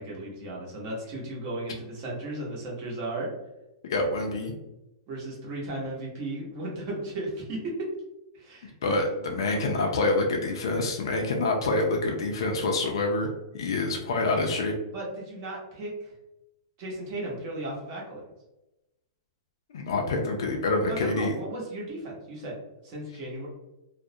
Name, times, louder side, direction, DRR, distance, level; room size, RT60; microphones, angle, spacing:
voice 1, 0.0-3.3 5.1-7.7 8.3-8.7 9.4-9.9 14.9-16.1 16.8-18.2 20.8-22.6 22.8-23.5, right 1 dB, 35° right, -3 dB, 0.8 m, -35 dB
voice 2, 3.8-4.5 8.8-13.3 13.5-14.7 19.7-21.4, left 2 dB, 75° left, 1 dB, 0.4 m, -26 dB
2.3 x 2.0 x 2.7 m, 0.96 s
supercardioid pair, 165°, 3 cm